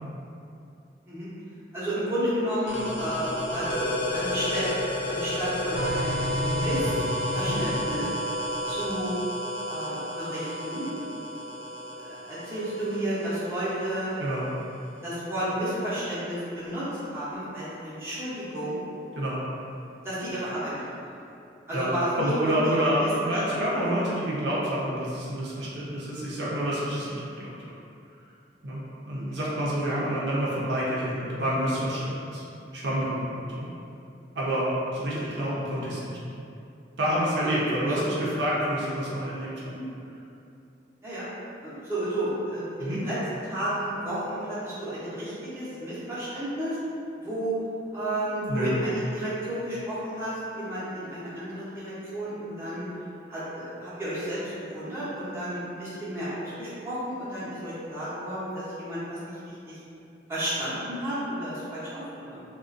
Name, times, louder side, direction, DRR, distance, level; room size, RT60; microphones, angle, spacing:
voice 1, 1.7-3.8 4.1-4.7 5.1-7.0 7.3-8.1 8.7-9.2 9.7-10.9 12.0-14.1 15.0-18.8 20.0-20.7 21.0-21.1 21.7-22.3 22.9-23.1 23.5-23.6 29.1-29.4 35.1-35.2 37.4-37.5 37.9-38.0 39.7-39.8 41.0-41.2 41.6-43.2 43.5-46.8 47.2-47.6 47.9-52.9 53.3-59.3 59.7-59.8 60.3-62.4, right 1 dB, 15° right, -12 dB, 0.6 m, -32 dB
sound 1, 2.7-14.1, left 1 dB, 85° left, 0.3 m, -31 dB
voice 2, 14.2-14.5 19.2-19.4 21.7-27.5 28.6-28.8 29.1-32.4 32.7-33.7 34.3-36.2 37.0-39.5 42.8-43.0 48.5-48.7, equal, 75° right, -7 dB, 0.5 m, -28 dB
2.4 x 2.1 x 2.4 m, 2.6 s
head